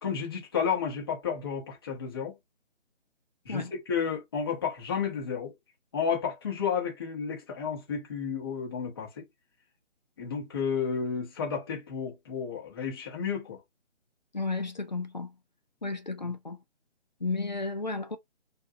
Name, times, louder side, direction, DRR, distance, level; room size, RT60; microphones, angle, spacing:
voice 1, 0.0-2.3 3.4-5.5 5.9-9.2 10.2-13.6, left 6 dB, 20° left, 0.9 m, -32 dB
voice 2, 14.3-15.3 15.8-16.6 17.2-18.2, left 3 dB, 40° left, 0.5 m, -33 dB
2.5 x 2.4 x 2.7 m
figure-of-eight pair, 160°, 37 cm